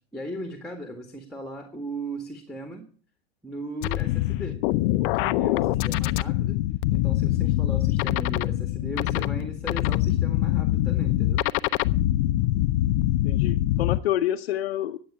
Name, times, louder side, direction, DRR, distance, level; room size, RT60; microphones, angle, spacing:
voice 1, 0.1-2.9 3.4-4.7 5.0-6.6 6.9-11.5, right 1 dB, ahead, 1.8 m, -37 dB
sound 1, 3.8-14.0, left 15 dB, 60° left, 0.6 m, -24 dB
voice 2, 13.2-15.0, left 12 dB, 90° left, 0.8 m, -28 dB
11.5 x 8.2 x 8.8 m
supercardioid pair, 120°, 30 cm